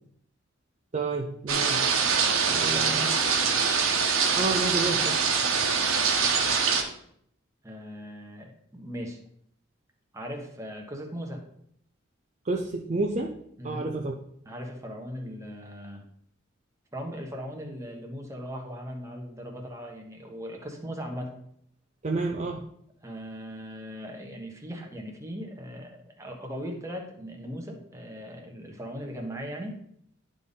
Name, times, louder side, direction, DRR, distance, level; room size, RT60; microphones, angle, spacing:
voice 1, 0.9-1.9 2.4-3.2 4.4-5.2 12.4-14.2 22.0-22.7, right 3 dB, 35° right, 0 dB, 0.5 m, -30 dB
sound 1, 1.5-6.8, right 5 dB, 90° right, 1.1 m, -24 dB
voice 2, 2.7-3.2 7.6-9.2 10.1-11.4 13.6-14.0 14.4-16.0 16.9-21.3 23.0-29.8, equal, 15° right, 1 dB, 1.2 m, -38 dB
11.0 x 3.7 x 4.0 m, 0.69 s
head